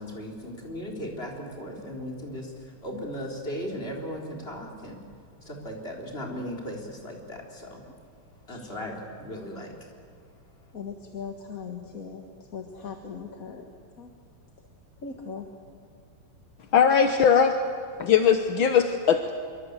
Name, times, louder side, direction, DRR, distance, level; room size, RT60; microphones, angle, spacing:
voice 1, 0.0-2.5 2.8-5.0 5.4-7.8 8.5-9.7, equal, 25° left, 0 dB, 4.2 m, -37 dB
voice 2, 10.7-12.2 12.5-13.6 14.0-14.1 15.0-15.5, left 5 dB, 40° left, 3 dB, 2.0 m, -39 dB
voice 3, 16.7-17.6 18.0-19.3, left 7 dB, 70° left, 7 dB, 1.8 m, -20 dB
26.5 x 24.0 x 8.2 m, 2.4 s
omnidirectional pair, 2.4 m